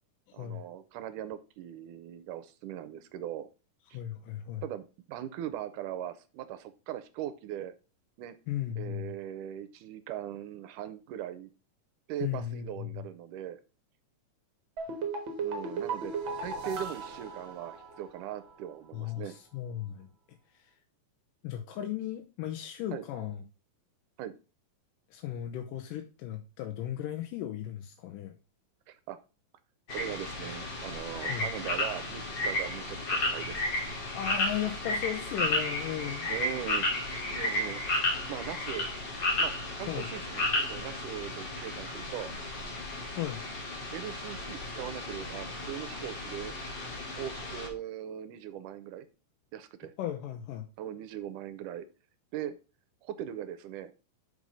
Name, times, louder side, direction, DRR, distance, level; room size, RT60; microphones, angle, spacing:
voice 1, 0.3-3.5 3.9-4.0 4.6-7.7 8.2-8.4 8.8-11.5 12.1-13.6 15.4-16.1 16.4-19.4 22.9-23.0 24.2-24.3 28.9-29.2 29.9-33.8 36.3-37.8 38.3-38.9 39.4-42.3 43.9-46.5 47.1-49.1 49.5-49.9 50.8-51.9 52.3-52.6 53.0-53.9, right 10 dB, 80° right, 13 dB, 2.1 m, -40 dB
voice 2, 3.9-4.6 8.5-9.1 12.2-13.0 18.9-20.1 20.5-20.7 21.4-23.4 25.1-28.3 31.3-31.5 34.1-36.3 39.9-40.1 43.2-43.4 50.0-50.7, left 11 dB, 85° left, 3 dB, 2.4 m, -36 dB
sound 1, 14.8-18.2 18.5-18.6, right 4 dB, 50° right, 1.5 m, -36 dB
sound 2, 29.9-47.7, left 2 dB, 40° left, 2.1 m, -33 dB
6.2 x 5.5 x 5.3 m, 0.33 s
omnidirectional pair, 3.9 m